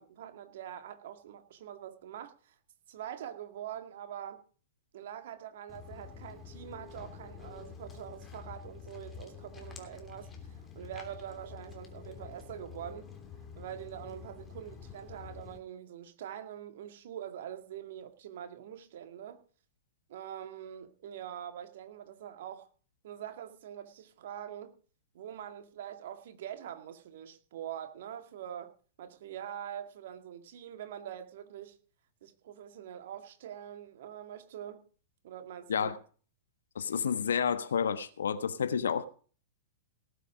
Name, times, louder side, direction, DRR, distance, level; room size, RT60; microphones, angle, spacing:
voice 1, 0.0-2.5 2.9-4.4 4.9-13.1 13.6-19.4 20.1-22.7 23.0-24.7 25.1-28.7 29.0-31.8 32.2-34.8 35.2-35.9, right 10 dB, 60° right, 1.9 m, -44 dB
Walk footsteps, 5.7-15.6, left 6 dB, 20° left, 3.1 m, -48 dB
voice 2, 36.7-39.1, left 7 dB, 70° left, 1.3 m, -30 dB
18.5 x 7.6 x 5.0 m
figure-of-eight pair, 105°, 0 cm